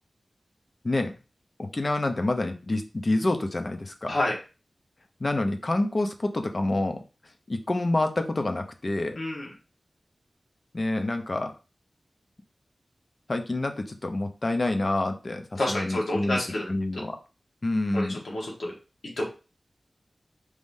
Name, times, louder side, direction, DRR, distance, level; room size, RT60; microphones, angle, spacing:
voice 1, 1.6-4.2 5.2-7.0 7.5-9.2 10.7-11.5 13.3-16.4 16.7-17.2 17.6-18.2, left 2 dB, 45° left, 6 dB, 0.7 m, -27 dB
voice 2, 9.2-9.5 15.6-16.6 17.9-18.7 19.2-19.3, left 1 dB, 90° left, -2 dB, 1.3 m, -28 dB
4.8 x 3.6 x 2.7 m, 0.33 s
wide cardioid pair, 90°, 0 cm